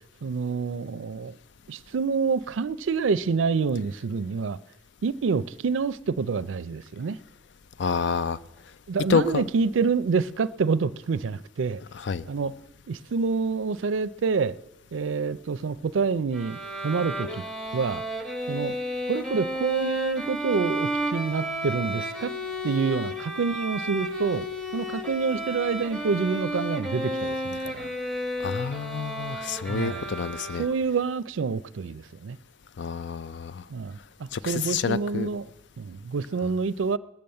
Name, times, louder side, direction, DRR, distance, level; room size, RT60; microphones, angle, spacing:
voice 1, 0.2-1.4 1.7-4.6 5.0-7.2 8.9-11.8 12.3-12.6 12.9-14.6 14.9-17.3 17.7-18.0 18.5-18.7 19.1-22.3 22.6-24.5 24.7-27.9 29.7-30.1 30.6-32.4 33.7-37.0, right 5 dB, 85° right, 0.4 m, -27 dB
voice 2, 7.8-8.4 9.1-9.4 12.0-12.2 28.4-30.6 32.8-33.6 34.3-35.3, left 5 dB, 65° left, 0.5 m, -28 dB
Bowed string instrument, 16.3-31.0, equal, 5° left, 1.5 m, -32 dB
19.5 x 7.1 x 7.7 m
head